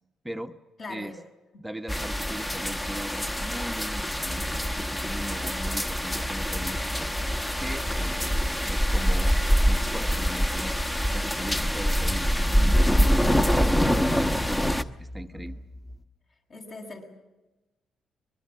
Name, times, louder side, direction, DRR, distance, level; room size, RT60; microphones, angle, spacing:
voice 1, 0.8-1.2 15.3-15.4 16.5-17.1, left 3 dB, 50° left, 2 dB, 7.0 m, -40 dB
voice 2, 1.6-7.1 7.6-10.8 11.1-12.3 12.9-15.6, right 1 dB, 10° right, 5 dB, 1.0 m, -39 dB
sound 1, 1.9-14.8, equal, 15° left, 1.1 m, -25 dB
sound 2, 4.2-16.1, left 1 dB, 30° left, 2.0 m, -40 dB
23.0 x 22.0 x 7.4 m, 1.1 s
cardioid pair, 90°, 0 cm